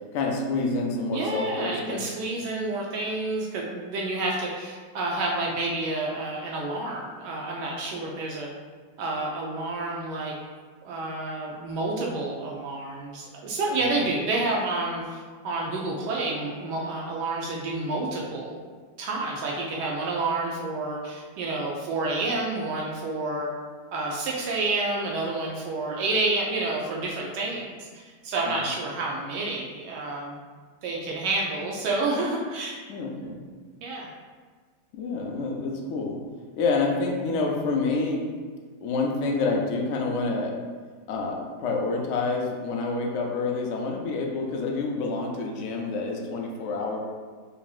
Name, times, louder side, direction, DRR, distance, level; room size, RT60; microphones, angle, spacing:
voice 1, 0.1-2.0 13.8-13.9 28.5-28.6 32.9-33.4 34.9-36.2 36.6-38.3 38.8-40.5 41.1-47.0, left 3 dB, 75° left, 0 dB, 0.6 m, -28 dB
voice 2, 1.1-8.5 9.0-10.3 10.8-18.6 19.0-23.5 23.9-30.4 30.8-32.8 33.8-34.1, right 2 dB, 85° right, -2 dB, 1.2 m, -29 dB
5.2 x 2.6 x 2.3 m, 1.5 s
omnidirectional pair, 1.8 m